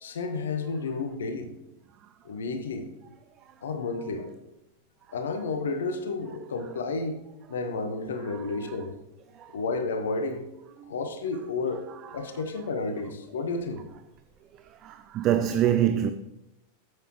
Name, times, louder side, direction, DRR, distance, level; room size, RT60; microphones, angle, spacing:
voice 1, 0.0-1.5 2.2-2.9 3.6-4.3 5.1-7.2 7.5-9.0 9.5-10.5 10.9-11.9 12.1-13.8, left 3 dB, 65° left, 0.7 m, -31 dB
voice 2, 8.3-8.8 9.4-9.5 10.8-10.9 12.0-12.2 14.8-16.1, right 10 dB, 35° right, 0.4 m, -26 dB
8.9 x 7.7 x 3.0 m
figure-of-eight pair, 90°, 0 cm